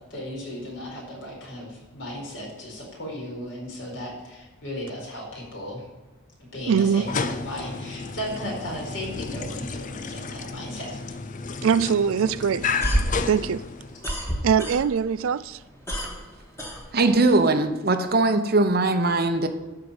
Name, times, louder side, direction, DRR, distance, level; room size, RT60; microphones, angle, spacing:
voice 1, 0.1-5.8 6.5-11.0, equal, 60° left, 4.6 m, -35 dB
voice 2, 6.7-7.1 11.6-12.7 13.3-13.6 14.1-14.2 14.4-15.6, right 7 dB, 75° right, 0.4 m, -22 dB
sound 1, 6.9-14.1, left 4 dB, 35° left, 0.5 m, -32 dB
sound 2, 12.6-15.2 15.5-17.4, equal, 15° left, 1.9 m, -28 dB
voice 3, 16.9-19.5, right 2 dB, 45° right, 0.9 m, -20 dB
12.5 x 4.9 x 8.1 m
head